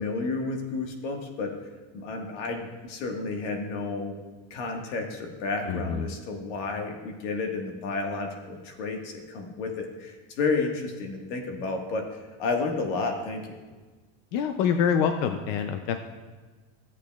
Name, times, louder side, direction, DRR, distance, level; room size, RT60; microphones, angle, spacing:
voice 1, 0.0-1.5 1.9-4.2 4.5-12.0 12.4-13.5, left 3 dB, 75° left, 2 dB, 1.6 m, -31 dB
voice 2, 5.7-6.1 14.3-16.1, left 7 dB, 45° left, 7 dB, 0.4 m, -26 dB
14.0 x 8.3 x 2.3 m, 1.3 s
cardioid pair, 175°, 36 cm